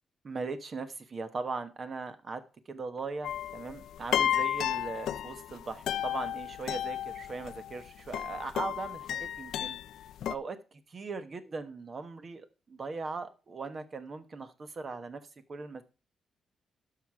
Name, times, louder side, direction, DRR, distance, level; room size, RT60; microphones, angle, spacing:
voice 1, 0.2-2.4 2.7-9.8 10.3-10.6 10.9-15.2 15.5-15.8, right 4 dB, 40° right, 10 dB, 1.1 m, -39 dB
sound 1, 3.2-10.3, left 11 dB, 85° left, 0.4 m, -33 dB
11.5 x 5.9 x 4.7 m, 0.33 s
cardioid pair, 115°, 0 cm